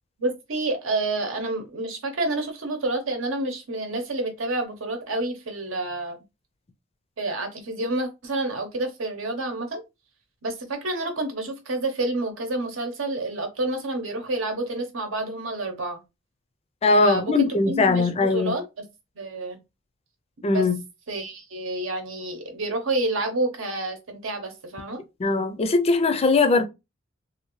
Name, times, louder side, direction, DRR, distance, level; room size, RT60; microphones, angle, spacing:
voice 1, 0.2-6.2 7.2-9.8 10.4-16.0 17.0-18.8 19.2-19.6 20.5-20.7 21.1-25.0, right 2 dB, 85° right, 0.9 m, -29 dB
voice 2, 16.8-18.5 20.4-20.8 25.2-26.6, left 3 dB, 30° left, 0.4 m, -20 dB
2.7 x 2.5 x 3.0 m
head